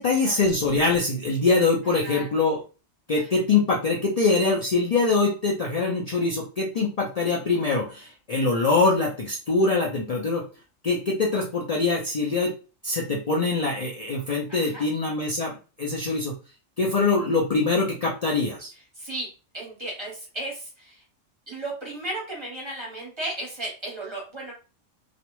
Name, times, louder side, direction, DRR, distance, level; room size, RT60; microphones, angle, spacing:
voice 1, 0.0-2.6 3.1-10.4 10.8-12.5 12.8-16.3 16.8-18.7, left 3 dB, 75° left, -2 dB, 0.3 m, -23 dB
voice 2, 1.8-2.3 3.2-3.3 14.5-14.8 18.9-19.3 19.5-21.0 21.5-24.5, right 1 dB, 25° right, -3 dB, 0.9 m, -35 dB
2.4 x 2.1 x 3.0 m, 0.34 s
omnidirectional pair, 1.3 m